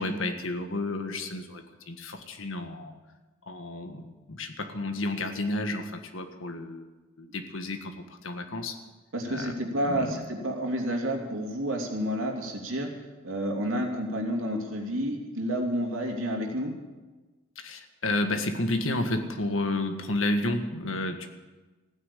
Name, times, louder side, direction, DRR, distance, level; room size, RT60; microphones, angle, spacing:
voice 1, 0.0-2.9 3.5-6.9 7.2-8.8 9.2-9.5 9.9-10.2 17.6-21.3, left 2 dB, 80° left, 6 dB, 1.6 m, -31 dB
voice 2, 9.1-12.9 13.2-16.7, equal, 85° right, 1 dB, 2.8 m, -30 dB
15.5 x 9.7 x 8.5 m, 1.2 s
head